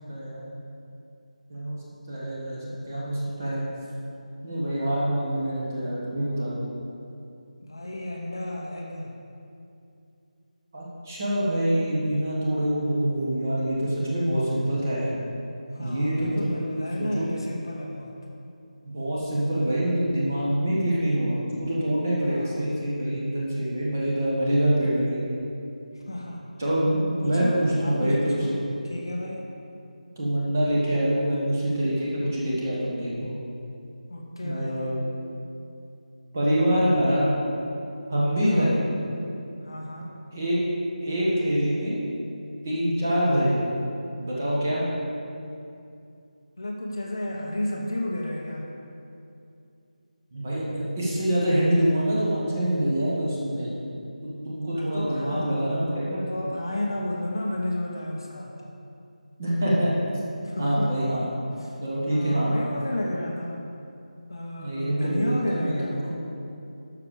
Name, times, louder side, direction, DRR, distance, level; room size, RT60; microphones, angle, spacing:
voice 1, 0.1-0.5 1.5-1.8 2.1-3.6 4.4-6.6 10.7-15.1 15.8-16.5 17.0-17.3 18.8-25.2 26.6-28.6 30.2-33.3 34.4-35.0 36.3-37.3 38.1-38.8 40.3-40.6 41.0-42.0 42.6-43.6 44.2-44.9 50.3-53.7 54.2-56.2 59.4-59.9 60.6-61.3 61.8-62.5 64.6-66.0, equal, 20° right, -7 dB, 1.7 m, -25 dB
voice 2, 7.6-9.1 15.7-18.1 22.2-22.7 25.9-26.4 27.2-28.5 28.8-29.4 34.1-35.0 38.4-38.8 39.6-40.1 46.6-48.7 54.7-55.5 56.3-58.6 60.4-60.9 61.6-61.8 62.1-63.6 64.3-66.0, left 1 dB, 35° left, -1 dB, 0.8 m, -32 dB
12.5 x 4.7 x 7.2 m, 2.6 s
figure-of-eight pair, 180°, 4 cm